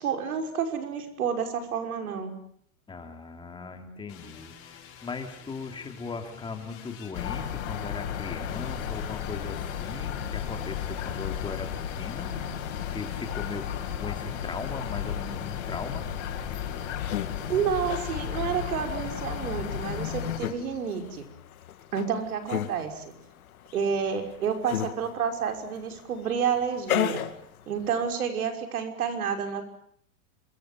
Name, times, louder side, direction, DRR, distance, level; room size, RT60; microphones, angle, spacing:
voice 1, 0.0-2.3 17.5-21.2 21.9-23.1 23.7-27.2 27.7-29.6, right 7 dB, 85° right, 6 dB, 5.9 m, -29 dB
voice 2, 2.9-11.7 12.0-12.3 12.9-16.1, left 5 dB, 10° left, 5 dB, 2.8 m, -38 dB
sound 1, 4.1-7.8 8.4-18.1, left 7 dB, 30° left, 7.2 m, -49 dB
sound 2, 7.1-20.4, left 9 dB, 60° left, 6.2 m, -33 dB
sound 3, 16.7-28.1, left 11 dB, 80° left, 2.5 m, -36 dB
27.0 x 23.5 x 7.6 m, 0.66 s
supercardioid pair, 145°, 43 cm